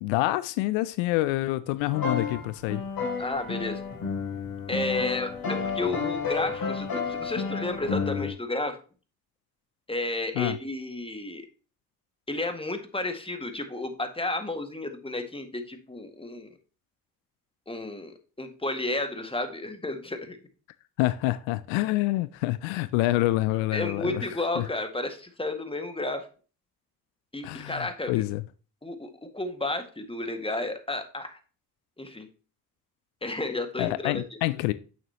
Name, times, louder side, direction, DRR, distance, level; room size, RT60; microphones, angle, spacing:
voice 1, 0.0-2.8 10.4-10.6 21.0-24.3 24.6-24.7 27.4-28.4 33.8-34.7, left 18 dB, 80° left, 0.6 m, -27 dB
sound 1, 1.9-8.3, left 5 dB, 50° left, 2.9 m, -31 dB
voice 2, 3.2-3.8 4.7-8.8 9.9-11.4 12.3-16.5 17.7-20.4 23.7-26.3 27.3-28.2 28.8-31.4 32.0-32.3 33.2-34.2, left 2 dB, 10° left, 1.9 m, -32 dB
8.8 x 6.9 x 2.9 m
hypercardioid pair, 45°, 45 cm